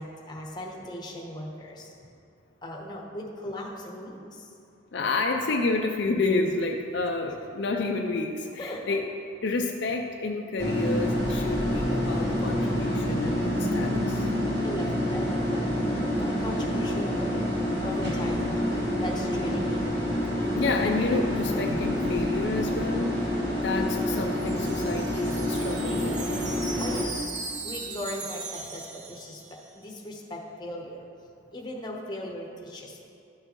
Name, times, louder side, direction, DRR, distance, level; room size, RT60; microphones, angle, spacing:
voice 1, 0.0-1.9 2.6-4.5 7.3-7.4 8.6-9.0 14.6-15.6 15.9-19.8 26.8-27.2 27.6-31.0 31.5-33.1, left 1 dB, 20° left, -1 dB, 0.9 m, -38 dB
voice 2, 4.9-9.0 9.4-14.3 20.6-26.2, left 3 dB, 60° left, 2 dB, 0.4 m, -29 dB
sound 1, 10.6-27.0, left 1 dB, 55° right, 1.5 m, -27 dB
Wind chime, 23.8-29.8, right 4 dB, 40° right, 0.5 m, -39 dB
12.0 x 6.6 x 3.0 m, 2.5 s
head